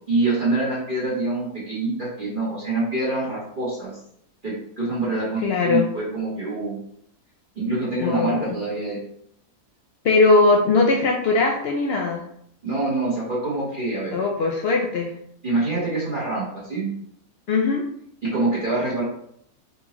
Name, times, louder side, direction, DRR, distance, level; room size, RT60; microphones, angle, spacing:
voice 1, 0.1-3.9 4.4-6.8 7.5-9.0 12.6-14.2 15.4-16.9 18.2-19.0, right 2 dB, 35° right, -7 dB, 1.2 m, -25 dB
voice 2, 5.4-5.9 8.0-8.6 10.0-12.2 14.1-15.1 17.5-17.8, left 3 dB, 90° left, 1 dB, 0.5 m, -20 dB
3.9 x 3.6 x 3.0 m, 0.70 s
omnidirectional pair, 1.7 m